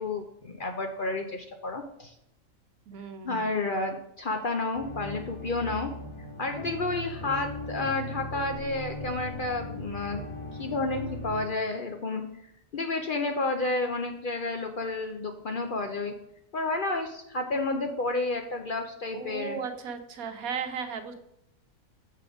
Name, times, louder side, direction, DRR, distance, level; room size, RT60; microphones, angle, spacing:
voice 1, 0.0-2.1 3.2-5.9 6.4-10.2 10.6-12.2 12.7-16.1 16.5-19.6, left 2 dB, 50° left, 4 dB, 0.6 m, -31 dB
voice 2, 2.9-3.4 19.1-21.1, right 6 dB, 85° right, 7 dB, 1.3 m, -35 dB
sound 1, 4.7-11.5, left 1 dB, 20° left, 1.7 m, -38 dB
6.9 x 4.9 x 4.9 m, 0.78 s
omnidirectional pair, 1.5 m